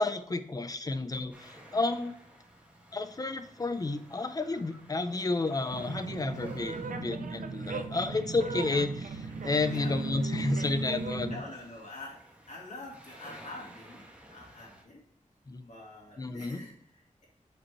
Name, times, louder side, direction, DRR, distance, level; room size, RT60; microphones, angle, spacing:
voice 1, 0.0-2.1 2.9-11.4 15.5-15.7 16.2-16.6, left 3 dB, 30° left, 10 dB, 0.5 m, -31 dB
sound 1, 1.3-14.8, right 1 dB, 10° right, 1.3 m, -55 dB
in one moment, 5.7-11.4, right 4 dB, 80° right, 0.6 m, -37 dB
voice 2, 9.6-10.0 11.3-12.2 12.5-14.0 14.3-15.0 15.6-17.3, left 2 dB, 65° left, -3 dB, 2.1 m, -45 dB
5.2 x 4.3 x 4.5 m, 0.67 s
wide cardioid pair, 110°, 13 cm